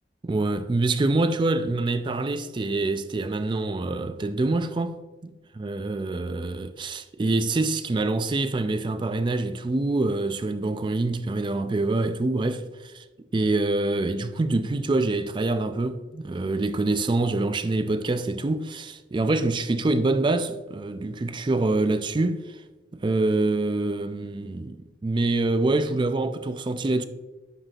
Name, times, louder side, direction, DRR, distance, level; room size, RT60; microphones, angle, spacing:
voice 1, 0.2-5.0 5.2-13.0 13.3-22.6 22.9-27.0, right 2 dB, 25° right, 0.3 m, -25 dB
9.9 x 5.7 x 2.4 m
head